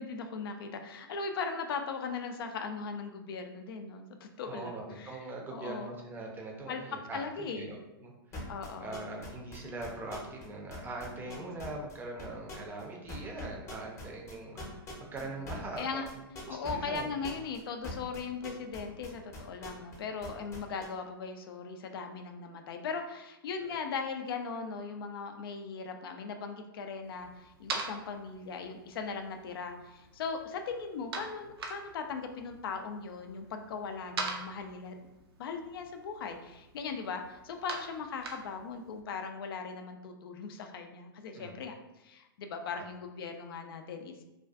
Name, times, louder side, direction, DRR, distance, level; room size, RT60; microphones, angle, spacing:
voice 1, 0.0-5.2 5.5-5.9 6.7-7.8 8.5-9.0 11.3-11.4 15.8-16.1 16.5-35.0 35.4-41.7 42.0-44.1, left 5 dB, 70° left, 6 dB, 0.4 m, -39 dB
voice 2, 4.4-8.5 8.8-16.6 16.8-17.2 41.3-41.5, right 2 dB, 15° right, 0 dB, 0.5 m, -42 dB
sound 1, 8.3-10.4 10.7-11.9 12.2-12.8 13.1-20.0 20.2-20.9, left 2 dB, 20° left, 0.7 m, -43 dB
sound 2, 27.0-39.0, right 3 dB, 80° right, 0.5 m, -44 dB
2.4 x 2.2 x 2.4 m, 0.96 s
hypercardioid pair, 115°, 13 cm